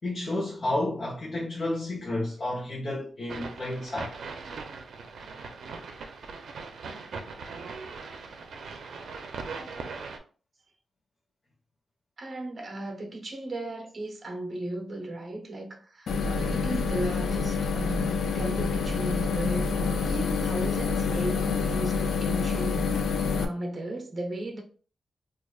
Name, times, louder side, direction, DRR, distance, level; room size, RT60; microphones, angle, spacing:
voice 1, 0.0-4.2, left 1 dB, 40° left, 1.0 m, -31 dB
sound 1, 3.3-10.2, right 4 dB, 75° right, 0.5 m, -40 dB
voice 2, 12.2-24.6, right 1 dB, 35° right, 0.7 m, -36 dB
sound 2, 16.1-23.5, left 5 dB, 90° left, 0.4 m, -27 dB
4.7 x 2.4 x 2.3 m
wide cardioid pair, 120°, 0 cm